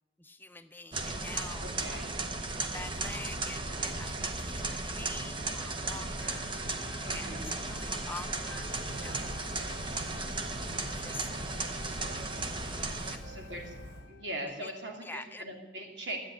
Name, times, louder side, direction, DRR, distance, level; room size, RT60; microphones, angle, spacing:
voice 1, 0.2-2.0 2.6-6.5 7.1-9.4 10.9-11.3 13.0-13.3 14.6-14.7 15.0-15.5, left 3 dB, 10° left, 9 dB, 0.5 m, -46 dB
sound 1, 0.9-13.2, right 3 dB, 30° right, 1.0 m, -35 dB
voice 2, 1.6-2.1 7.0-7.4 13.2-13.8 14.1-16.2, right 1 dB, 90° right, 1 dB, 3.0 m, -40 dB
Wind instrument woodwind instrument, 6.1-14.4, left 5 dB, 80° left, 0.7 m, -53 dB
sound 2, 8.5-14.0, equal, 60° right, 4.7 m, -47 dB
13.0 x 9.2 x 9.7 m, 1.2 s
head